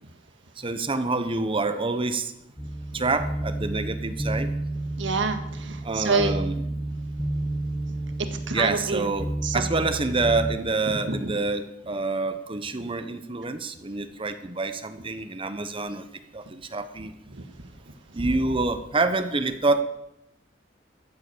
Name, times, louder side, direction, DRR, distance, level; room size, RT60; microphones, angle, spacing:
voice 1, 0.6-2.3 2.9-4.5 5.8-6.5 8.5-16.1 16.3-17.1 18.1-19.8, right 3 dB, 30° right, 10 dB, 0.9 m, -27 dB
sound 1, 2.6-10.6, right 1 dB, 10° left, 0.8 m, -31 dB
voice 2, 5.0-6.4 8.2-9.1 9.4-9.6 10.1-10.2 10.9-11.2 12.8-12.9 17.3-17.7, right 4 dB, 70° right, 8 dB, 1.7 m, -28 dB
14.0 x 8.2 x 8.1 m, 0.84 s
head